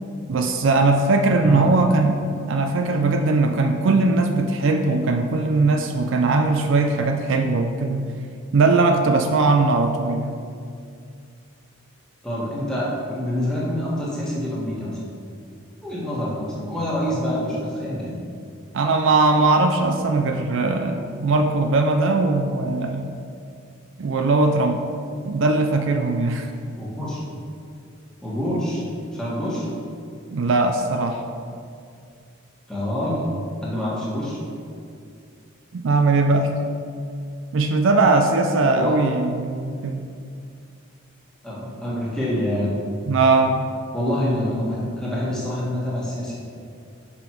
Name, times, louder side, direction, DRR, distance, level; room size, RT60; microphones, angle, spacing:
voice 1, 0.3-8.1 8.5-10.4 18.7-23.1 24.0-24.8 25.2-26.5 28.5-28.6 30.3-31.2 35.7-36.5 37.5-40.1 43.1-43.7, right 3 dB, 60° right, 5 dB, 0.4 m, -20 dB
voice 2, 12.2-15.0 15.8-18.2 26.7-27.2 28.2-28.8 29.1-29.7 32.7-33.2 33.6-34.4 38.7-39.0 41.4-42.7 43.9-46.4, left 1 dB, 5° left, -7 dB, 1.4 m, -26 dB
5.9 x 5.2 x 4.5 m, 2.3 s
head